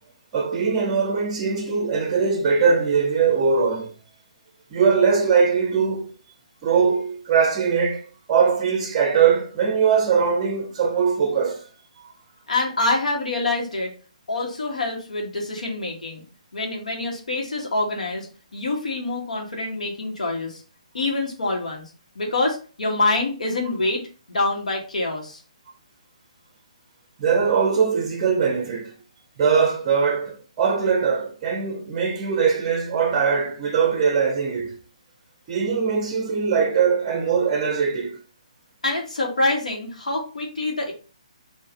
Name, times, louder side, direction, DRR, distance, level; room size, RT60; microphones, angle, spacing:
voice 1, 0.3-3.9 4.7-6.1 6.6-11.7 12.0-12.1 27.2-28.9 29.4-34.8 35.5-38.2, right 6 dB, 25° right, 0.6 m, -21 dB
voice 2, 12.5-13.9 14.3-16.2 16.5-18.3 18.5-20.6 20.9-21.8 22.1-24.0 24.3-25.4 38.8-40.9, left 2 dB, 80° left, 1.4 m, -25 dB
3.5 x 2.6 x 3.6 m
hypercardioid pair, 155°, 4 cm